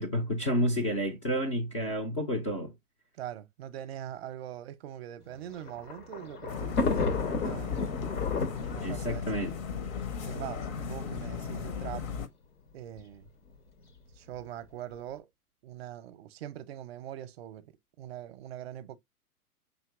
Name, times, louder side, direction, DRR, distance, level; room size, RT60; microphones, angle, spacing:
voice 1, 0.0-2.7 8.8-9.5, equal, 25° left, 0.4 m, -30 dB
voice 2, 3.2-7.9 8.7-9.4 10.2-12.1 12.7-13.3 14.1-15.3 15.6-17.7 18.0-19.0, right 11 dB, 45° right, 0.6 m, -42 dB
Thunder, 5.3-10.6 11.5-11.6 11.8-11.9 13.0-13.3, left 4 dB, 80° left, 1.2 m, -33 dB
sound 1, 6.5-12.3, left 6 dB, 60° left, 0.9 m, -36 dB
5.1 x 2.9 x 2.3 m
hypercardioid pair, 120°, 45 cm